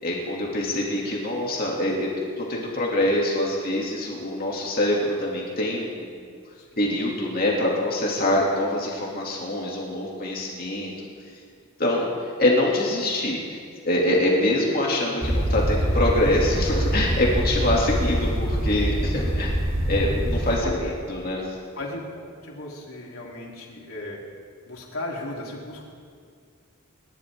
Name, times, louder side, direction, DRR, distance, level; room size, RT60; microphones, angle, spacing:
voice 1, 0.0-2.1 2.4-6.4 6.8-10.9 11.8-12.1 12.4-13.6 13.8-19.5 19.9-20.7 21.1-21.4, left 1 dB, 45° left, -3 dB, 2.8 m, -24 dB
sound 1, 15.2-20.6, equal, 65° right, 2.9 m, -24 dB
voice 2, 20.6-20.9 21.8-24.2 24.7-25.9, left 1 dB, 80° left, -3 dB, 3.6 m, -36 dB
29.5 x 12.0 x 3.8 m, 2.2 s
head